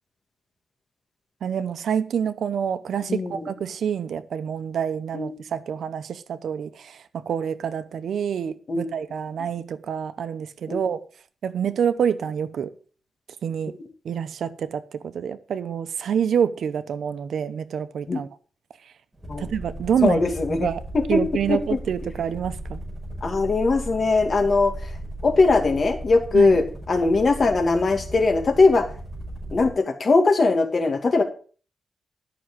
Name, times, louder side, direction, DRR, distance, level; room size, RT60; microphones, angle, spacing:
voice 1, 1.4-11.0 11.4-12.7 13.4-13.7 14.0-18.3 19.4-20.3 20.6-20.8 21.1-22.8 26.3-26.6, right 8 dB, 90° right, 0.8 m, -27 dB
voice 2, 3.1-3.5 5.1-5.4 8.7-8.9 10.7-10.8 18.1-18.2 19.3-19.5 20.0-20.7 20.9-21.2 21.5-21.8 23.2-24.7 25.2-28.9 29.5-31.2, left 3 dB, 50° left, 2.2 m, -20 dB
sound 1, 19.1-29.8, right 1 dB, 5° right, 5.3 m, -36 dB
12.5 x 6.2 x 6.2 m
wide cardioid pair, 105°, 0 cm